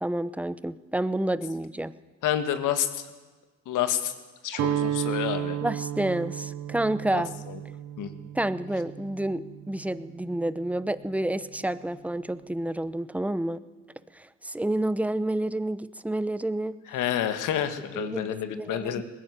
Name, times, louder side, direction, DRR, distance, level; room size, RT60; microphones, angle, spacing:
voice 1, 0.0-1.9 5.6-7.3 8.3-13.6 14.1-16.7 17.9-19.0, right 1 dB, 5° right, 14 dB, 0.8 m, -29 dB
voice 2, 2.2-3.0 3.7-4.1 4.4-5.6 7.1-7.6 8.0-8.1 16.9-19.0, left 10 dB, 85° left, 10 dB, 1.8 m, -29 dB
Guitar, 4.5-10.6, right 12 dB, 60° right, 0.9 m, -33 dB
20.0 x 15.5 x 9.8 m, 1.3 s
cardioid pair, 90°, 30 cm